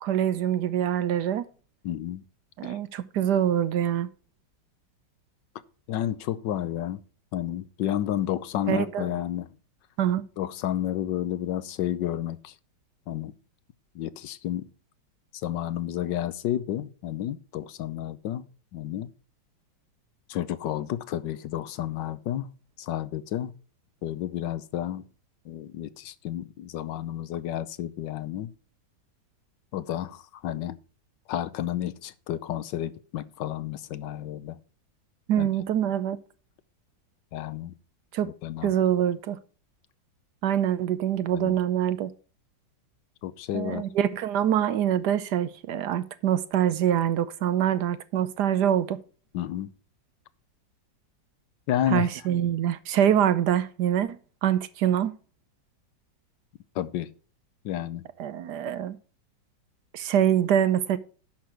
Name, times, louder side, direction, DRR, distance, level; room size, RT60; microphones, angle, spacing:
voice 1, 0.0-1.5 2.6-4.1 8.7-9.1 10.0-10.2 35.3-36.2 38.1-38.3 38.6-39.4 40.4-42.1 43.5-49.0 51.9-55.2 58.2-59.0 59.9-61.0, right 10 dB, 70° right, 1.2 m, -25 dB
voice 2, 1.8-2.2 2.6-2.8 5.9-7.0 7.3-9.5 10.4-12.5 13.1-13.3 13.9-14.7 15.4-18.5 18.7-19.1 20.3-22.5 22.8-23.5 24.0-25.0 25.4-28.5 29.7-30.8 31.3-34.6 35.4-35.5 37.3-37.7 38.2-38.7 41.3-41.6 43.2-43.9 49.3-49.7 51.7-52.1 56.7-57.1 57.6-58.0, left 11 dB, 75° left, 1.4 m, -31 dB
10.5 x 6.1 x 4.8 m
omnidirectional pair, 2.0 m